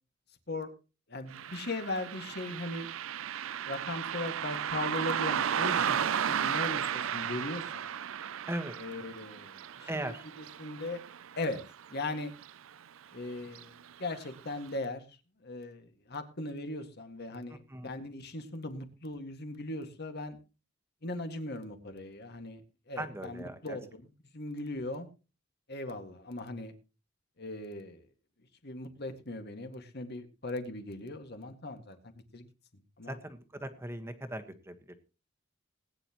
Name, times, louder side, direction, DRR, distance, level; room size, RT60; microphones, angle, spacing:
voice 1, 1.1-2.9 3.7-7.8 8.8-11.0 11.4-11.6 11.9-12.3 13.1-15.2 15.4-20.4 21.0-22.6 22.9-25.1 25.7-26.7 27.4-28.1 28.6-32.0 32.3-32.5 33.0-33.2, left 2 dB, 55° left, 7 dB, 2.0 m, -39 dB
Car passing by, 1.3-12.1 12.4-12.5 13.5-13.6 14.1-14.2 14.7-14.8, right 8 dB, 75° right, 0.5 m, -34 dB
voice 2, 9.9-10.2 17.5-17.9 23.0-23.8 33.1-35.0, right 1 dB, 15° right, 7 dB, 1.4 m, -39 dB
20.0 x 9.9 x 3.0 m, 0.32 s
head